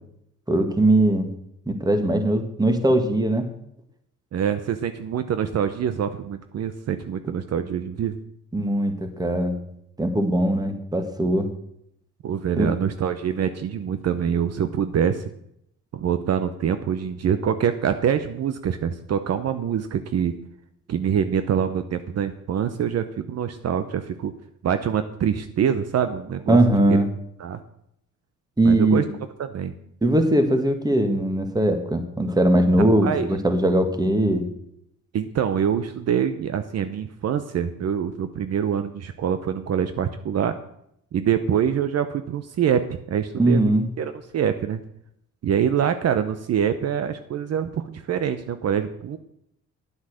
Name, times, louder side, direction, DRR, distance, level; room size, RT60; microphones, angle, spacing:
voice 1, 0.5-1.3 1.7-3.5 8.5-9.5 10.0-11.5 12.6-12.7 26.5-27.1 28.6-29.1 30.0-34.4 43.4-43.9, right 1 dB, 15° right, 6 dB, 1.8 m, -20 dB
voice 2, 4.3-8.2 12.2-15.3 15.9-20.3 20.9-24.3 24.6-26.6 27.4-27.6 28.6-29.0 29.4-29.7 32.8-33.3 35.1-40.5 41.1-43.6 44.0-44.8 45.4-49.2, right 8 dB, 55° right, 10 dB, 0.8 m, -25 dB
10.0 x 8.1 x 6.4 m, 0.74 s
cardioid pair, 90°, 30 cm